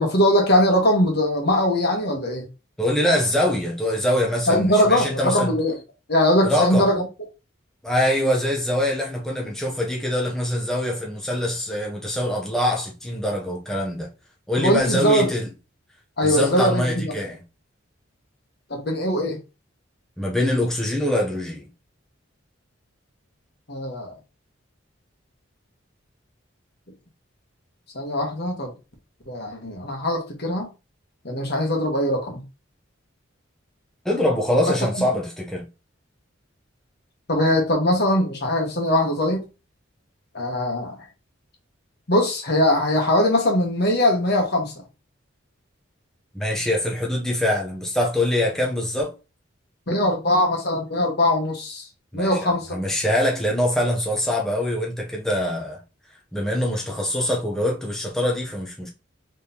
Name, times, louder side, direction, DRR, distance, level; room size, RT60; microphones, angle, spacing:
voice 1, 0.0-2.5 4.5-5.8 6.1-7.1 14.5-15.3 16.2-17.1 18.7-19.4 23.7-24.1 27.9-28.7 29.3-30.7 31.2-32.4 34.9-35.0 37.3-39.4 40.3-41.0 42.1-44.8 49.9-51.8 52.1-52.8, left 1 dB, 55° left, 1.3 m, -21 dB
voice 2, 2.8-5.5 6.4-6.9 7.8-14.1 14.5-15.5 16.2-17.4 20.2-21.6 34.0-35.7 46.3-49.1 52.1-55.8 56.3-58.9, left 1 dB, 5° left, 0.7 m, -24 dB
3.7 x 3.3 x 2.8 m
head